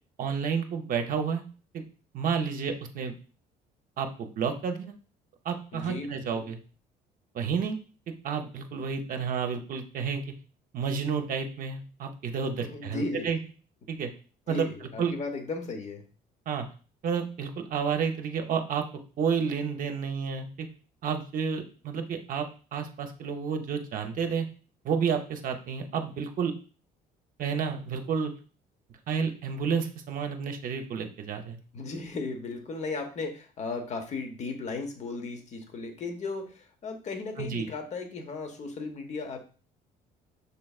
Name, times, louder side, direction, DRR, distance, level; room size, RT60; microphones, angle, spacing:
voice 1, 0.2-1.4 1.7-1.8 2.1-3.1 4.0-4.9 5.4-6.6 7.3-7.8 8.2-10.2 10.7-13.4 13.9-14.1 14.5-15.1 16.5-16.7 17.0-18.8 19.2-20.7 21.0-22.5 22.7-24.5 24.8-26.5 27.4-28.3 29.1-31.6 37.4-37.7, right 6 dB, 55° right, 5 dB, 0.7 m, -30 dB
voice 2, 5.7-6.5 12.6-13.3 14.5-16.0 31.7-39.5, left 3 dB, 45° left, 6 dB, 0.9 m, -36 dB
6.7 x 3.2 x 2.4 m, 0.38 s
cardioid pair, 110°, 17 cm